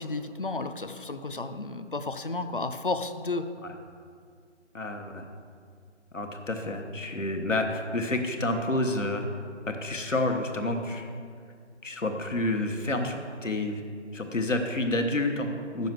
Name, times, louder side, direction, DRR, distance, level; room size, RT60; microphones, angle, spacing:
voice 1, 0.0-3.5, left 3 dB, 45° left, 9 dB, 0.5 m, -32 dB
voice 2, 4.7-5.3 6.1-9.3 9.7-11.1 11.8-13.8 14.1-15.9, left 2 dB, 85° left, 4 dB, 1.4 m, -29 dB
8.1 x 6.9 x 7.7 m, 2.2 s
figure-of-eight pair, 165°, 37 cm